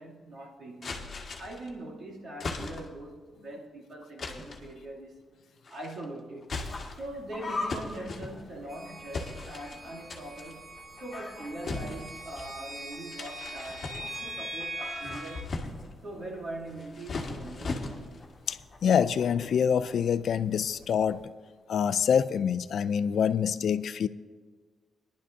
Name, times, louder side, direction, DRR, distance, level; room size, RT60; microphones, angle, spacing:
voice 1, 0.0-5.2 5.7-6.5 6.9-15.7 16.0-18.1, right 1 dB, 55° right, 2.4 m, -42 dB
sound 1, 0.8-1.7 2.4-3.1 4.2-4.7 5.6-6.0 6.4-7.1 7.7-8.7 9.1-9.8 10.1-10.5 11.6-12.5 13.1-14.4 14.9-16.0 16.7-18.3, left 3 dB, 35° left, 1.5 m, -38 dB
sound 2, 6.5-21.2, left 3 dB, 20° left, 2.3 m, -45 dB
sound 3, 8.7-15.4, right 1 dB, 25° right, 1.4 m, -42 dB
voice 2, 18.5-21.2 21.7-24.1, left 7 dB, 60° left, 0.3 m, -26 dB
22.5 x 11.0 x 2.6 m
wide cardioid pair, 175°, 0 cm